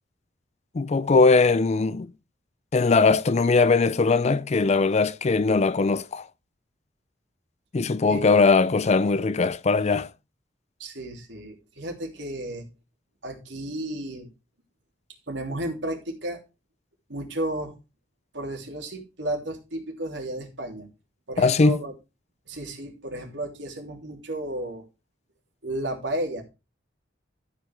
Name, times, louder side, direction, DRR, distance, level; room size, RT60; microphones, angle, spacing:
voice 1, 0.7-2.1 2.7-6.3 7.7-10.1 21.4-21.8, left 4 dB, 40° left, 0.4 m, -20 dB
voice 2, 10.8-12.7 13.2-14.3 15.3-16.4 17.1-17.7 18.3-20.9 21.3-21.9 22.5-24.8 25.6-26.4, right 1 dB, 85° right, 3.1 m, -33 dB
13.0 x 5.1 x 4.7 m
head